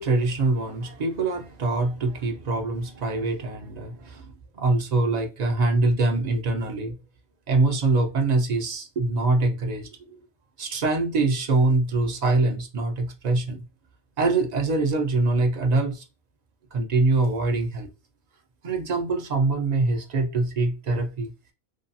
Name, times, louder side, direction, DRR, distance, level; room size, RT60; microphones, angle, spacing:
voice 1, 0.0-4.3 4.5-7.0 7.5-10.2 10.6-13.6 14.2-16.0 16.7-17.9 18.6-21.3, right 3 dB, 50° right, 0.5 m, -24 dB
2.6 x 2.3 x 2.6 m
omnidirectional pair, 1.1 m